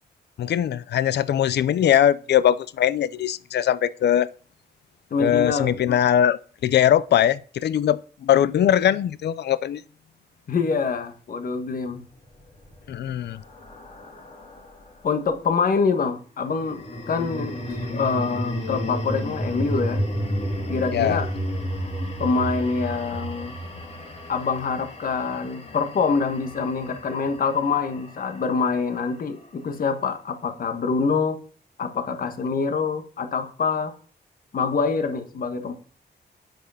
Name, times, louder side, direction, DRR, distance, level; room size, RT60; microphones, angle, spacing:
voice 1, 0.4-4.3 5.2-9.8 12.9-13.4 20.9-21.2, left 10 dB, 70° left, 0.5 m, -21 dB
voice 2, 5.1-5.9 10.5-12.0 15.0-20.0 20.7-21.3 22.2-23.6 24.3-31.4 31.8-33.9 34.5-35.7, left 5 dB, 55° left, 1.5 m, -25 dB
sound 1, 12.4-14.9 16.5-28.8, equal, 35° left, 2.6 m, -32 dB
10.5 x 8.2 x 5.6 m
wide cardioid pair, 165°, 18 cm